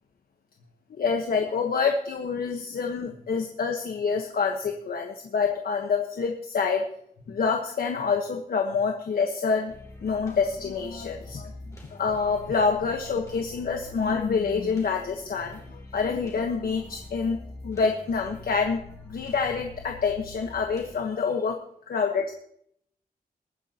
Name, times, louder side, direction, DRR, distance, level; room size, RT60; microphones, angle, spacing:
voice 1, 0.9-6.8 7.3-9.7 10.0-11.5 11.9-17.4 17.6-18.8 19.1-21.6 21.9-22.3, left 5 dB, 70° left, 3 dB, 1.3 m, -27 dB
sound 1, 9.7-21.0, left 2 dB, 20° left, 3.1 m, -45 dB
21.0 x 9.5 x 3.0 m, 0.67 s
wide cardioid pair, 180°, 16 cm